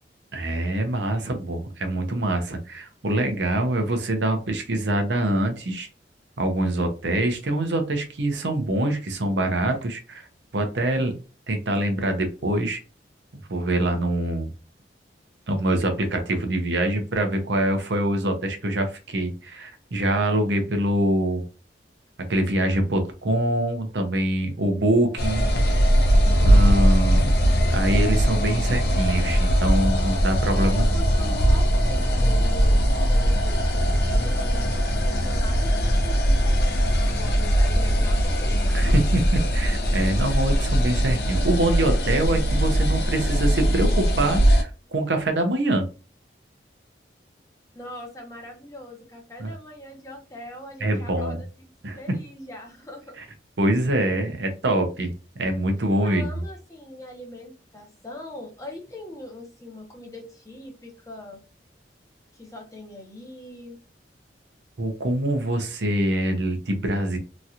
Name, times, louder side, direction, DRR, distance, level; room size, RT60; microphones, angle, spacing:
voice 1, 0.3-5.9 6.4-10.3 10.5-11.1 11.5-12.8 13.5-14.5 15.5-21.4 22.3-25.8 26.4-27.4 27.7-30.8 38.7-45.8 49.4-49.5 50.8-51.4 51.8-52.2 53.6-55.1 55.4-56.4 64.8-67.2, right 1 dB, 80° right, 5 dB, 0.7 m, -24 dB
sound 1, 25.2-44.6, equal, 60° left, 0.7 m, -20 dB
voice 2, 30.5-38.9 47.7-51.5 52.0-53.2 56.0-61.4 62.3-63.8, left 1 dB, 20° left, 1 dB, 0.8 m, -41 dB
3.0 x 2.4 x 2.7 m, 0.32 s
head